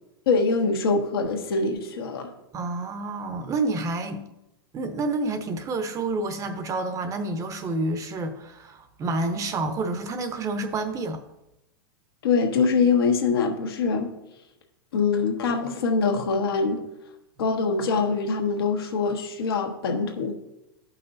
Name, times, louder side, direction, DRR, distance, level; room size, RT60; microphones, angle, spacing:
voice 1, 0.3-2.3 12.2-14.1 14.9-16.8 17.4-20.3, left 4 dB, 75° left, 3 dB, 1.4 m, -24 dB
voice 2, 2.5-4.2 4.7-11.2, right 2 dB, 25° right, 8 dB, 0.8 m, -29 dB
14.0 x 5.7 x 2.6 m, 0.91 s
hypercardioid pair, 115°, 12 cm